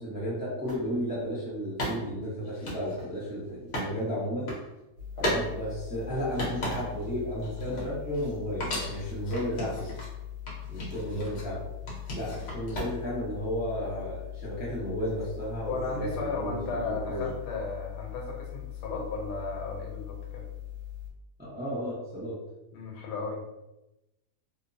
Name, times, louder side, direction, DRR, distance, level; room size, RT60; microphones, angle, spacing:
voice 1, 0.0-4.5 5.2-9.9 10.7-11.6 12.1-17.3 21.4-22.4, equal, 15° right, -9 dB, 0.4 m, -33 dB
sound 1, 0.7-0.8 1.8-3.9 4.2-4.6 5.2-5.5 5.8-7.1 7.4-8.3 8.6-10.1 10.5-11.5 11.9-13.2, equal, 55° left, 1.0 m, -35 dB
sound 2, 5.0-21.1, left 11 dB, 80° right, 1.2 m, -41 dB
voice 2, 15.7-20.4 22.7-23.4, left 3 dB, 85° left, 0 dB, 1.2 m, -35 dB
2.8 x 2.0 x 2.5 m, 0.97 s
omnidirectional pair, 1.8 m